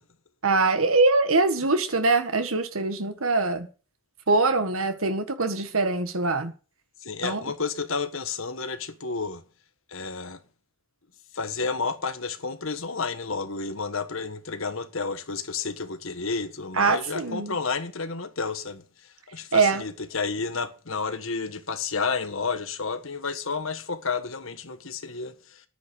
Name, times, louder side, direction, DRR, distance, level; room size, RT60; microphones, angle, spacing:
voice 1, 0.4-3.7 4.3-6.5 7.2-7.4 16.7-17.6 19.5-19.8, right 3 dB, 75° right, 1.7 m, -23 dB
voice 2, 7.0-9.4 9.9-10.4 11.3-18.8 19.3-25.6, left 4 dB, 65° left, 1.5 m, -31 dB
10.5 x 9.3 x 7.0 m
head